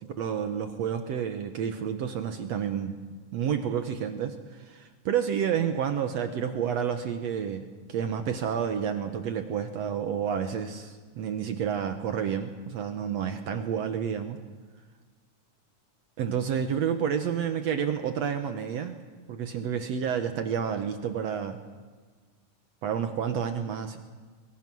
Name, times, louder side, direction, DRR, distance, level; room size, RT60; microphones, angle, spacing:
voice 1, 0.0-3.0 3.3-14.4 16.2-19.0 19.3-21.6 22.8-24.0, right 8 dB, 65° right, 7 dB, 2.0 m, -30 dB
24.0 x 22.0 x 6.2 m, 1.5 s
omnidirectional pair, 3.7 m